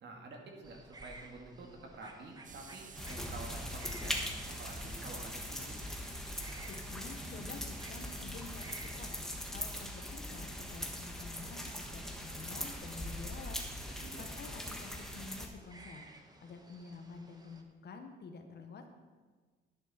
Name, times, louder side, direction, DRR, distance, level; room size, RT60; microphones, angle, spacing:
voice 1, 0.0-4.3 4.6-5.8 13.9-14.3, right 2 dB, 60° right, 1 dB, 2.2 m, -49 dB
sound 1, 0.6-17.6, right 2 dB, 20° right, 1.3 m, -57 dB
sound 2, 2.4-9.8, right 5 dB, 40° right, 0.9 m, -54 dB
sound 3, 3.0-15.5, left 1 dB, ahead, 1.5 m, -41 dB
voice 2, 6.7-8.7 8.9-13.6 14.2-16.1 16.4-18.9, left 4 dB, 55° left, 5 dB, 1.5 m, -49 dB
10.5 x 9.4 x 4.4 m, 1.4 s
cardioid pair, 90°, 20 cm